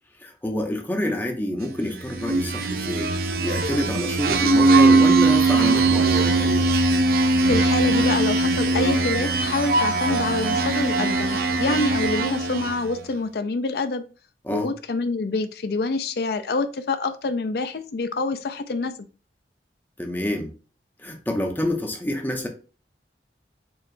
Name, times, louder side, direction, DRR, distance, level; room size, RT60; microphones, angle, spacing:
voice 1, 0.2-3.1 3.4-6.7 14.4-14.7 20.0-20.5 21.0-22.5, left 1 dB, 10° left, 3 dB, 0.7 m, -27 dB
sound 1, 2.0-12.9, right 3 dB, 55° right, 0.5 m, -20 dB
voice 2, 7.4-14.0 14.5-18.9, left 3 dB, 60° left, 10 dB, 0.4 m, -26 dB
4.7 x 3.1 x 2.6 m, 0.35 s
head